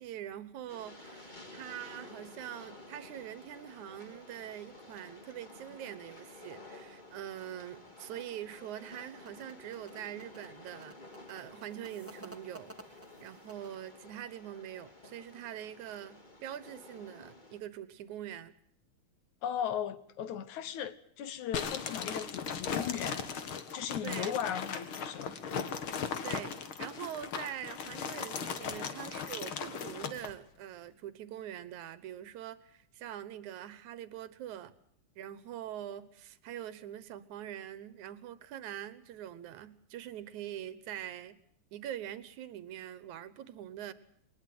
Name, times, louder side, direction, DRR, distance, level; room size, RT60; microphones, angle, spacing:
voice 1, 0.0-11.0 11.3-18.5 24.0-24.3 26.2-34.7 35.2-41.4 41.7-43.9, right 11 dB, 75° right, 2.5 m, -44 dB
Train, 0.7-17.6, left 2 dB, 15° left, 2.0 m, -52 dB
sound 1, 8.7-13.9, right 1 dB, 10° right, 0.6 m, -54 dB
voice 2, 19.4-23.3 23.7-25.4 28.6-28.8, left 9 dB, 75° left, 2.6 m, -37 dB
sound 2, 21.5-30.3, left 6 dB, 50° left, 2.1 m, -38 dB
22.5 x 20.0 x 7.8 m
omnidirectional pair, 3.4 m